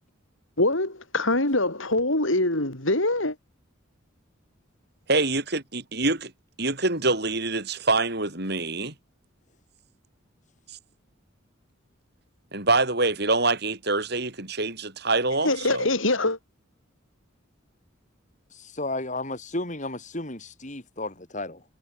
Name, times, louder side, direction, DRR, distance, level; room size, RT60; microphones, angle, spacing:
voice 1, 0.6-3.4 15.4-16.4, left 2 dB, 75° left, 5.8 m, -24 dB
voice 2, 5.1-6.3 6.6-8.9 10.7-10.8 12.5-15.9, right 3 dB, 55° right, 7.7 m, -25 dB
voice 3, 18.5-21.6, left 2 dB, 35° left, 4.3 m, -33 dB
head